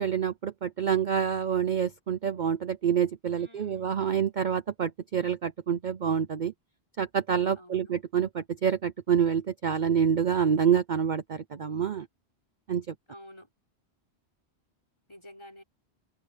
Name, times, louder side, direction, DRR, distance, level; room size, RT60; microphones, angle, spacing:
voice 1, 0.0-6.5 7.0-12.1 12.7-12.9, right 8 dB, 50° right, 0.7 m, -27 dB
voice 2, 3.4-4.1 7.6-7.9 13.1-13.5 15.1-15.6, left 1 dB, 25° left, 4.6 m, -50 dB
open air
omnidirectional pair, 1.1 m